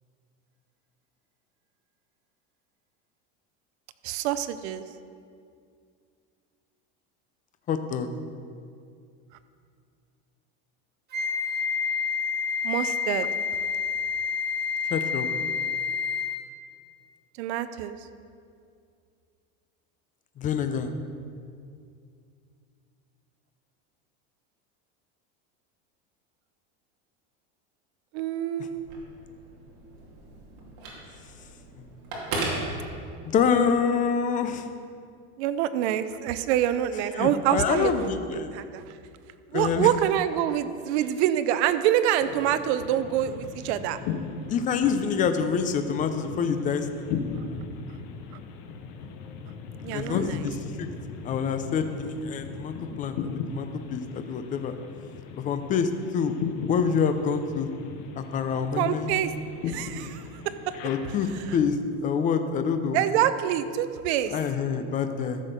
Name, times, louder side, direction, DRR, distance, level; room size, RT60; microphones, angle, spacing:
voice 1, 4.0-4.8 12.6-13.3 17.4-18.0 28.1-28.9 35.4-38.1 38.5-38.8 39.5-44.0 49.8-50.4 58.8-59.3 59.7-60.2 60.7-60.8 62.9-64.3, right 11 dB, 75° right, 12 dB, 0.7 m, -26 dB
voice 2, 7.7-8.1 14.9-15.3 20.4-20.9 33.2-34.7 37.1-38.5 39.5-39.9 44.5-47.1 49.9-50.9 51.2-53.2 53.5-54.8 55.4-56.3 56.7-57.7 58.2-59.1 60.8-61.8 62.0-63.0 64.3-65.4, left 6 dB, 25° left, 8 dB, 0.6 m, -26 dB
Wind instrument woodwind instrument, 11.1-16.5, left 6 dB, 30° right, 1.3 m, -28 dB
Telephone, 28.7-33.5, right 2 dB, 50° right, 2.5 m, -36 dB
sound 1, 42.2-61.6, left 5 dB, 55° left, 1.1 m, -38 dB
14.0 x 6.4 x 5.2 m, 2.3 s
cardioid pair, 160°, 34 cm